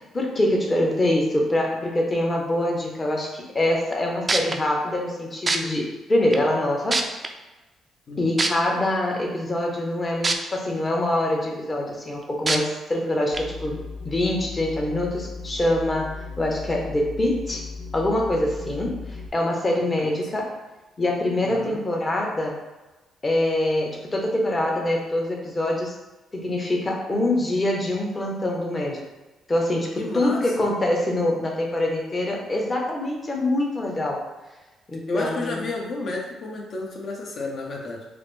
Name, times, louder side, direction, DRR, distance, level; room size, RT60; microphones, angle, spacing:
voice 1, 0.1-7.0 8.2-17.6 17.9-20.5 21.0-22.6 23.2-25.9 26.3-29.1 29.5-34.2 34.9-35.6, left 1 dB, 25° left, 0 dB, 0.9 m, -24 dB
sound 1, 3.9-4.0 4.3-4.6 5.5-5.6 6.3-6.4 6.9-7.3 8.4-8.5 10.2-10.3 10.9-11.0 12.5-12.6 13.3-13.4, right 3 dB, 30° right, 0.4 m, -22 dB
sound 2, 13.3-19.3, left 4 dB, 90° left, 0.3 m, -37 dB
voice 2, 21.4-21.8 30.0-30.7 35.1-38.0, left 2 dB, 55° left, -1 dB, 0.9 m, -31 dB
4.9 x 2.0 x 3.3 m, 1.1 s
cardioid pair, 90°, 0 cm